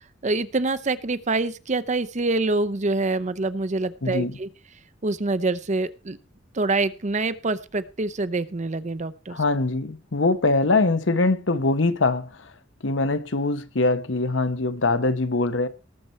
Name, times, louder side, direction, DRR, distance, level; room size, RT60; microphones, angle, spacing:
voice 1, 0.2-4.5 5.0-6.2 6.5-9.4, right 3 dB, 40° right, 0.7 m, -25 dB
voice 2, 4.0-4.4 9.3-12.5 12.8-15.7, left 3 dB, 85° left, 1.0 m, -23 dB
18.5 x 7.0 x 4.4 m
head